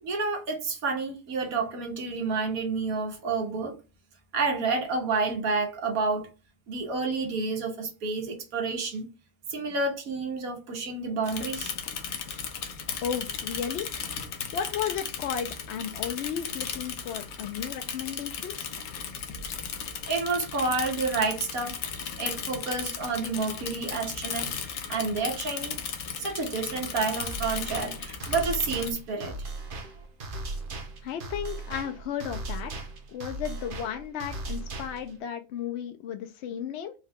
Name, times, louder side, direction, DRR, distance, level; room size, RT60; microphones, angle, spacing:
voice 1, 0.0-3.8 4.3-6.3 6.7-9.1 9.5-11.7 20.1-21.8 22.2-24.5 24.9-25.8 26.2-29.5, right 4 dB, 85° right, 1.5 m, -29 dB
Bicycle / Mechanisms, 11.2-28.9, left 7 dB, 85° left, 1.2 m, -36 dB
voice 2, 13.0-13.9 14.5-18.7 31.0-32.7 33.1-36.9, left 8 dB, 65° left, 0.7 m, -34 dB
sound 1, 27.2-35.2, right 2 dB, 45° right, 0.8 m, -37 dB
4.5 x 2.2 x 3.5 m
omnidirectional pair, 1.5 m